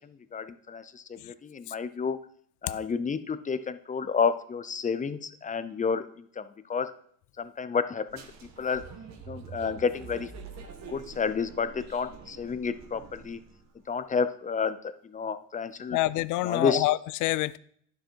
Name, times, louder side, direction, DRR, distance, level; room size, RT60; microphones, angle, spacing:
voice 1, 0.3-2.2 2.6-6.1 6.4-6.5 6.7-6.9 7.4-8.2 8.6-8.8 9.3-10.3 10.9-13.4 13.9-16.0 16.4-16.8, left 5 dB, 25° left, 0.7 m, -30 dB
sound 1, 8.1-13.7, right 5 dB, 60° right, 1.7 m, -46 dB
voice 2, 15.9-17.6, left 17 dB, 75° left, 0.5 m, -27 dB
10.0 x 7.2 x 4.6 m
cardioid pair, 105°, 30 cm